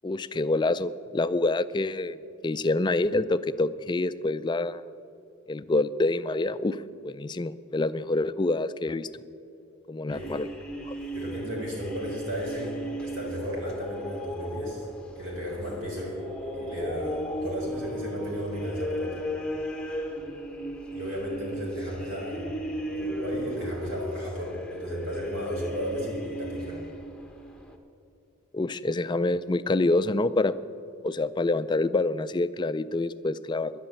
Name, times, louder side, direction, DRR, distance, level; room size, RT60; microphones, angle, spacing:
voice 1, 0.0-2.2 2.4-4.8 5.5-9.1 9.9-10.5 10.9-11.0 28.5-30.6 31.0-33.7, left 2 dB, 20° left, 14 dB, 0.3 m, -27 dB
sound 1, 10.1-27.8, equal, 5° left, 1.0 m, -36 dB
voice 2, 11.1-14.9 15.2-19.2 20.9-22.6 22.9-26.8, equal, 60° right, -4 dB, 4.2 m, -34 dB
11.5 x 9.8 x 9.0 m, 2.7 s
head